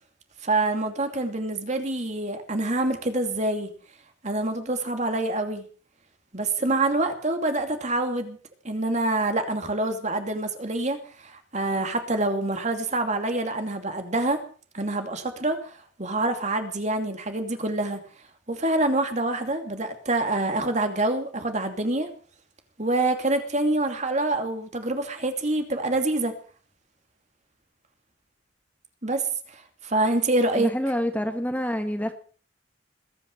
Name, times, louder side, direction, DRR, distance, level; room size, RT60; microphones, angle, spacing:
voice 1, 0.4-3.7 4.2-5.6 6.3-8.4 8.6-14.4 14.7-18.0 18.5-22.1 22.8-26.3 29.0-29.2 29.5-30.7, right 2 dB, 40° right, 6 dB, 2.7 m, -26 dB
voice 2, 30.6-32.1, equal, 10° left, 6 dB, 1.9 m, -27 dB
21.0 x 9.9 x 6.6 m, 0.42 s
head